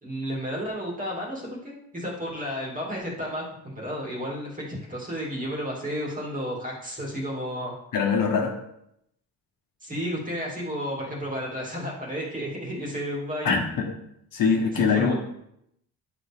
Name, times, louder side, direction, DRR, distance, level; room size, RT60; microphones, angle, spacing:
voice 1, 0.0-7.7 9.8-13.5 14.7-15.1, equal, 20° right, -3 dB, 2.4 m, -32 dB
voice 2, 7.9-8.5 13.4-13.9 14.3-15.1, left 5 dB, 60° left, 1 dB, 1.5 m, -23 dB
9.9 x 5.0 x 3.6 m, 0.77 s
cardioid pair, 145°, 38 cm